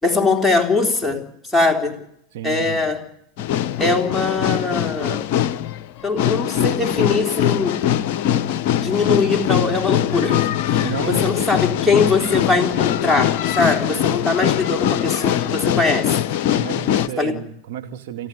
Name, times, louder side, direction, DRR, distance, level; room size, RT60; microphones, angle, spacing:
voice 1, 0.0-2.0 2.4-3.0 3.8-5.2 6.0-7.8 8.8-16.2 17.2-17.3, left 3 dB, ahead, 3 dB, 3.7 m, -21 dB
voice 2, 2.3-2.8 10.8-11.7 16.5-18.3, right 9 dB, 55° right, 4 dB, 2.8 m, -32 dB
sound 1, 3.4-17.1, left 11 dB, 50° left, 0.8 m, -22 dB
29.0 x 11.5 x 9.2 m, 0.74 s
figure-of-eight pair, 85°, 0 cm